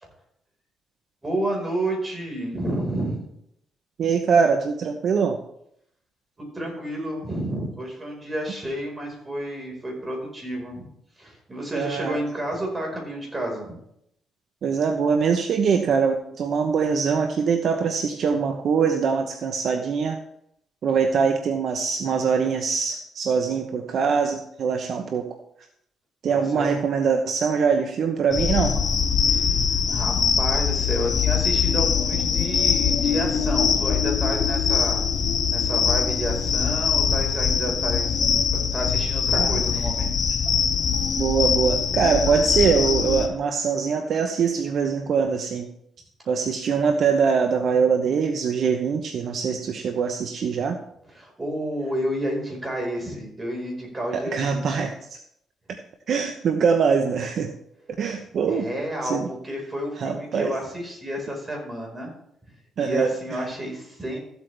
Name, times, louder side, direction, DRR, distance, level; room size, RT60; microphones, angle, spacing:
voice 1, 1.2-3.2 6.4-10.9 11.2-13.8 26.3-26.7 29.2-35.0 35.5-38.2 38.5-40.1 51.1-54.8 58.5-62.1 62.8-64.2, right 1 dB, 20° right, 0 dB, 4.7 m, -30 dB
voice 2, 4.0-5.4 11.7-12.2 14.6-20.2 20.8-25.3 26.2-28.8 39.3-39.6 41.2-45.7 46.3-50.8 54.1-55.2 55.7-55.8 56.1-57.5 58.0-58.7 59.0-59.3 60.0-60.5 62.8-63.4, right 6 dB, 60° right, 5 dB, 0.9 m, -23 dB
sound 1, 28.3-43.3, left 6 dB, 55° left, 0.9 m, -22 dB
14.5 x 8.1 x 3.4 m, 0.74 s
cardioid pair, 90°, 0 cm